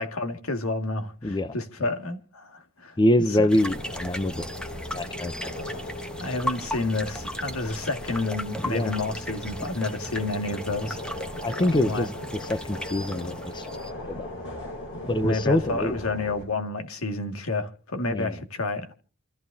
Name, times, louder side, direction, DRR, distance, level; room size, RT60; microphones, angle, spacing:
voice 1, 0.0-3.0 3.4-3.5 6.2-11.2 11.6-12.1 15.2-18.9, left 2 dB, 85° left, 2.1 m, -30 dB
voice 2, 1.2-1.5 3.0-4.5 4.9-5.3 8.6-8.9 11.4-13.7 14.1-14.3 15.1-16.0 18.1-18.4, left 1 dB, 20° left, 0.7 m, -25 dB
sound 1, 3.5-13.9, equal, 5° left, 1.1 m, -37 dB
sound 2, 3.6-16.5, left 1 dB, 65° left, 5.7 m, -38 dB
29.0 x 14.5 x 2.8 m
head